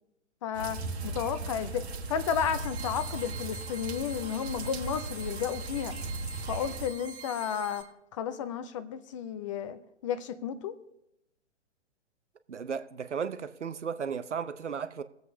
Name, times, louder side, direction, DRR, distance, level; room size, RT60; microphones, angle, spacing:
voice 1, 0.4-6.0 6.5-10.8, left 8 dB, 30° left, 0.5 m, -33 dB
sound 1, 0.5-6.9, right 3 dB, 60° right, 1.5 m, -37 dB
sound 2, 2.1-7.8, right 3 dB, 10° right, 1.1 m, -45 dB
voice 2, 12.5-15.0, right 6 dB, 75° right, 0.7 m, -35 dB
23.5 x 7.8 x 2.7 m
figure-of-eight pair, 120°, 35 cm